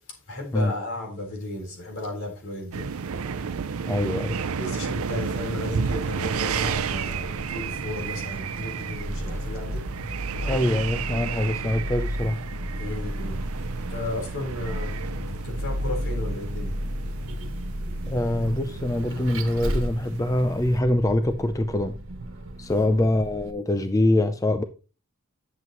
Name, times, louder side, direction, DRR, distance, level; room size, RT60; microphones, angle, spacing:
voice 1, 0.3-2.9 4.6-9.8 12.7-15.0 15.4-16.8 22.7-23.0, left 2 dB, 70° left, 4.0 m, -34 dB
sound 1, 2.7-20.8, right 6 dB, 85° right, 0.5 m, -33 dB
voice 2, 3.9-4.4 10.4-12.4 18.1-22.0 22.6-24.6, left 1 dB, 15° left, 0.4 m, -24 dB
Vehicle, 6.6-23.5, equal, 65° right, 1.7 m, -33 dB
11.0 x 7.6 x 3.0 m
head